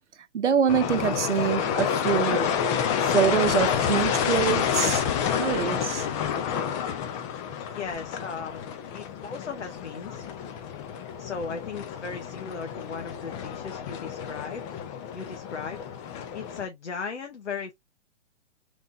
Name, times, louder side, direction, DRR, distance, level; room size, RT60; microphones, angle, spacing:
voice 1, 0.3-2.6 3.0-5.0 5.4-6.1, right 7 dB, 85° right, 0.5 m, -25 dB
sound 1, 0.7-16.7, left 8 dB, 30° left, 0.7 m, -29 dB
voice 2, 7.7-8.6 8.9-10.4 11.2-14.8 15.1-15.8 16.3-17.7, left 5 dB, 80° left, 0.8 m, -37 dB
3.3 x 3.1 x 2.5 m
figure-of-eight pair, 120°, 35 cm